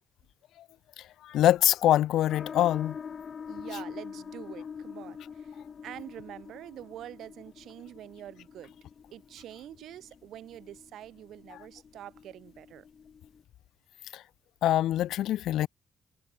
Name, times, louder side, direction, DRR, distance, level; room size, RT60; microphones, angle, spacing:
voice 1, 1.2-3.0 3.7-3.8 14.1-14.2 14.6-15.7, left 13 dB, 80° left, 0.3 m, -24 dB
sound 1, 2.3-13.4, left 6 dB, 45° left, 1.2 m, -45 dB
voice 2, 3.5-8.7 9.1-12.8, right 12 dB, 75° right, 1.8 m, -46 dB
cardioid pair, 90°, 0 cm